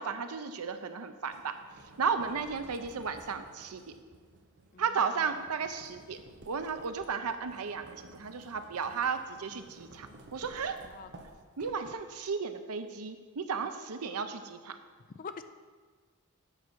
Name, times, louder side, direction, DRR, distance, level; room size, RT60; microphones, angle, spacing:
voice 1, 0.0-1.6 2.0-3.8 4.8-6.2 6.5-10.1 10.3-10.8 11.6-14.8, right 5 dB, 85° right, 8 dB, 0.7 m, -34 dB
sound 1, 1.2-12.2, right 2 dB, 50° right, 0.8 m, -55 dB
voice 2, 4.7-5.4 10.8-11.1 15.0-15.4, left 5 dB, 40° left, 10 dB, 0.4 m, -46 dB
7.9 x 5.8 x 6.0 m, 1.5 s
head